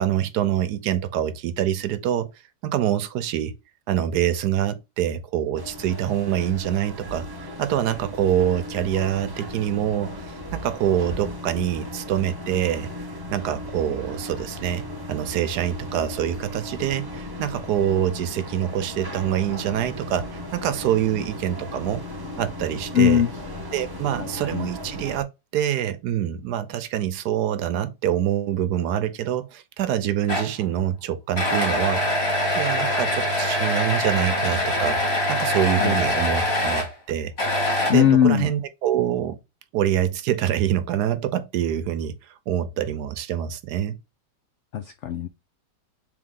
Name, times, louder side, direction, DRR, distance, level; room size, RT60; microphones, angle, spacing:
voice 1, 0.0-2.3 2.6-3.5 3.9-12.9 13.3-22.0 22.4-23.2 23.7-25.3 25.5-35.0 35.3-37.3 37.9-39.4 39.7-42.2 42.5-44.0, right 10 dB, 75° right, 1.2 m, -25 dB
sound 1, 5.6-25.2, left 1 dB, 20° right, 0.7 m, -36 dB
voice 2, 22.9-23.3 24.2-24.7 35.8-36.0 37.9-38.5 44.7-45.3, left 9 dB, 80° left, 0.6 m, -20 dB
sound 2, 30.3-30.6 31.4-36.9 37.4-38.3, left 1 dB, 40° left, 1.9 m, -24 dB
3.8 x 3.4 x 3.6 m
omnidirectional pair, 1.8 m